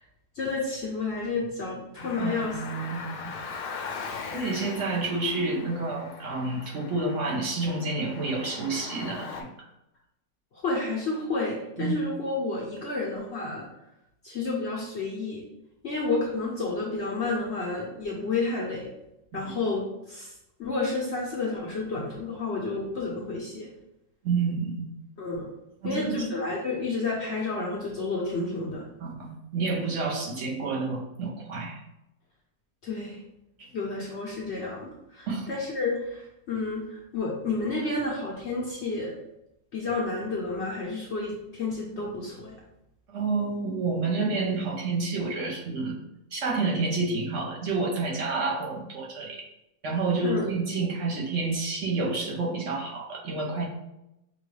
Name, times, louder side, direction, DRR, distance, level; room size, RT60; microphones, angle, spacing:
voice 1, 0.3-2.6 10.5-13.6 14.2-15.4 15.8-18.9 19.3-20.3 20.6-23.7 25.2-25.5 25.8-28.8 32.8-33.2 33.7-39.1 39.7-42.6 50.2-50.5, left 3 dB, 55° left, -4 dB, 0.8 m, -30 dB
Car, 1.9-9.4, left 5 dB, 70° left, 1.1 m, -40 dB
voice 2, 2.2-3.1 4.3-9.5 11.8-12.0 19.3-19.5 24.2-24.8 25.8-26.2 29.0-31.8 33.6-33.7 35.3-35.5 43.1-46.0 46.3-49.4 49.8-53.7, right 3 dB, 55° right, -2 dB, 0.9 m, -29 dB
6.0 x 2.3 x 3.2 m, 0.88 s
omnidirectional pair, 1.9 m